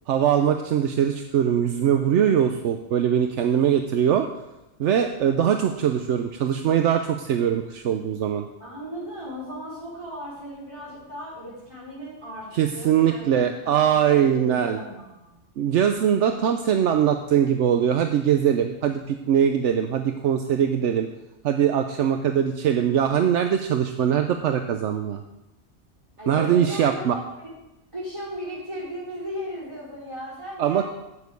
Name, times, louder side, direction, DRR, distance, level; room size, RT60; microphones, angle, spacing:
voice 1, 0.1-4.3 4.8-8.5 12.5-14.8 15.6-21.1 21.4-25.2 26.3-27.1 30.6-30.8, right 9 dB, 75° right, 6 dB, 1.0 m, -22 dB
voice 2, 8.6-12.5 12.7-15.3 26.2-27.5 27.9-30.8, equal, 25° right, -6 dB, 5.1 m, -36 dB
8.2 x 7.3 x 8.3 m, 0.96 s
omnidirectional pair, 1.2 m